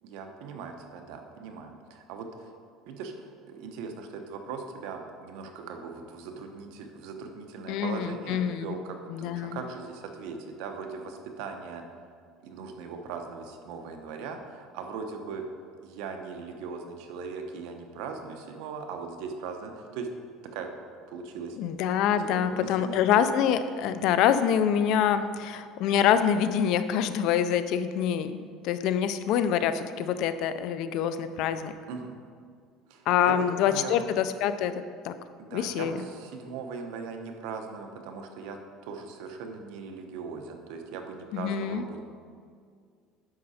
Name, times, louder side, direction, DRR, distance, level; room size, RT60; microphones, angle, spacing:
voice 1, 0.0-2.5 2.9-11.8 12.4-15.4 15.8-20.1 20.5-20.7 21.1-21.6 22.2-23.1 28.9-29.0 31.9-32.1 32.9-34.0 35.4-38.6 38.8-42.0, right 5 dB, 75° right, 4 dB, 1.0 m, -39 dB
voice 2, 7.7-8.7 9.1-9.6 21.6-31.7 33.1-35.1 35.5-36.0 41.3-41.8, left 9 dB, 60° left, 11 dB, 0.5 m, -26 dB
9.7 x 6.4 x 4.3 m, 2.1 s
cardioid pair, 150°, 0 cm